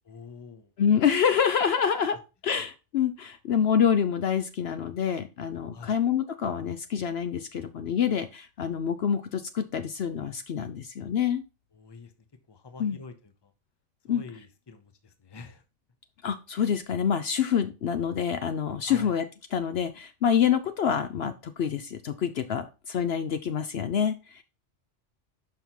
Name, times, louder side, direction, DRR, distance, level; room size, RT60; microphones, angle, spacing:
voice 1, 0.1-0.7 5.7-6.0 11.7-12.1 12.5-13.5 14.1-15.6 18.9-19.2, left 4 dB, 25° left, 9 dB, 0.8 m, -46 dB
voice 2, 0.8-2.2 2.4-11.4 12.8-13.0 14.1-14.2 16.2-19.2 19.5-24.4, left 8 dB, 65° left, 9 dB, 0.8 m, -26 dB
5.7 x 5.5 x 4.5 m, 0.30 s
omnidirectional pair, 1.2 m